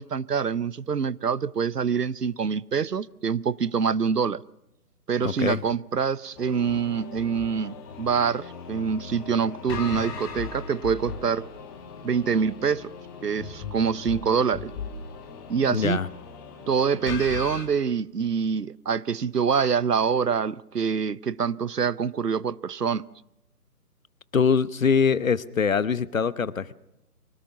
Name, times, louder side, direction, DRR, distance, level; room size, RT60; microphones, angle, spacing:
voice 1, 0.0-4.4 5.1-11.5 12.0-12.9 13.2-14.7 15.5-16.0 16.7-23.1, right 6 dB, 80° right, 0.8 m, -25 dB
voice 2, 5.2-5.6 15.6-16.1 24.3-26.7, left 6 dB, 55° left, 1.0 m, -23 dB
sound 1, 6.4-17.7, left 5 dB, 15° left, 1.6 m, -38 dB
24.0 x 18.0 x 6.9 m
figure-of-eight pair, 145°, 47 cm